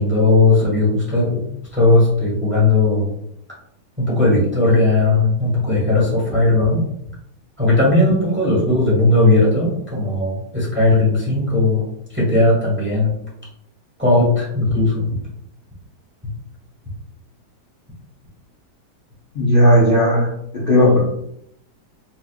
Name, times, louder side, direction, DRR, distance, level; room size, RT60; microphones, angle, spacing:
voice 1, 0.0-1.5 1.7-3.1 4.0-6.8 7.6-11.8 12.1-13.1 14.0-15.1, left 2 dB, 10° right, -6 dB, 1.0 m, -17 dB
voice 2, 19.4-20.3 20.5-21.0, equal, 50° left, -5 dB, 0.7 m, -14 dB
4.3 x 2.4 x 2.3 m, 0.75 s
omnidirectional pair, 1.8 m